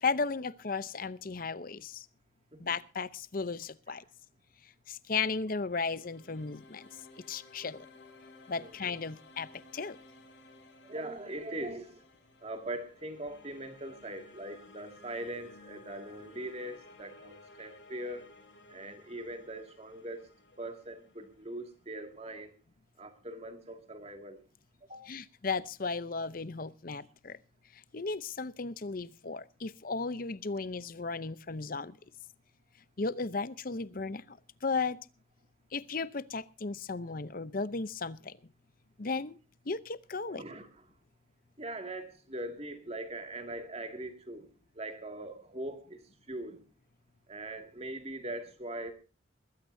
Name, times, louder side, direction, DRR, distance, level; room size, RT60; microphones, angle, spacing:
voice 1, 0.0-2.1 2.6-4.0 4.9-6.9 7.3-7.9 8.5-10.0 25.1-27.4 27.7-32.0 33.0-35.0 35.7-38.4 39.0-39.4 39.7-40.5, left 4 dB, 45° left, 16 dB, 0.7 m, -35 dB
sound 1, 5.5-22.5, left 2 dB, 65° left, 5.5 m, -56 dB
voice 2, 10.8-12.0 12.4-18.3 18.7-20.2 20.6-22.5 23.0-24.4 24.9-25.0 40.4-40.7 41.6-44.5 44.7-46.0 46.3-46.6 47.3-48.9, right 1 dB, 30° right, 6 dB, 2.3 m, -41 dB
21.0 x 15.5 x 2.7 m, 0.34 s
head